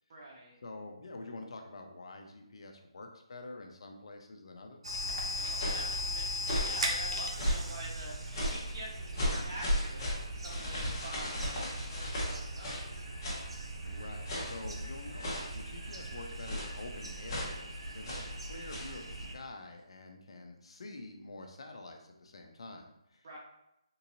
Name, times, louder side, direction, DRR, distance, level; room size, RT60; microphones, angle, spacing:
voice 1, 0.1-0.5 5.3-13.1 23.2-23.4, right 1 dB, 45° right, -4 dB, 1.1 m, -47 dB
voice 2, 0.6-4.8 13.8-23.3, left 2 dB, 60° left, 4 dB, 0.6 m, -47 dB
sound 1, 4.8-19.3, equal, 65° right, 0.7 m, -39 dB
sound 2, 5.3-5.9 6.4-6.8 7.4-7.8 8.3-8.7 9.1-12.9 13.2-13.5 14.2-14.6 15.2-15.6 16.4-16.8 17.3-17.6 18.0-18.3 18.7-18.9, left 1 dB, 35° left, 1.1 m, -35 dB
3.8 x 2.7 x 2.6 m, 0.84 s
figure-of-eight pair, 155°, 3 cm